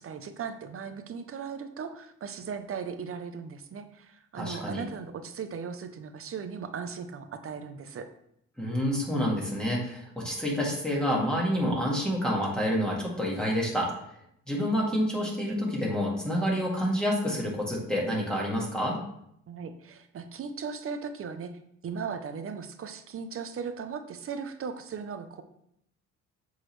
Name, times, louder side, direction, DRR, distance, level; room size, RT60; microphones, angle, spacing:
voice 1, 0.0-8.1 19.5-25.4, right 6 dB, 45° right, 9 dB, 0.7 m, -38 dB
voice 2, 4.3-4.8 8.6-13.9 14.5-19.0, equal, 5° left, -4 dB, 2.0 m, -28 dB
7.7 x 3.9 x 3.2 m, 0.72 s
cardioid pair, 90°, 30 cm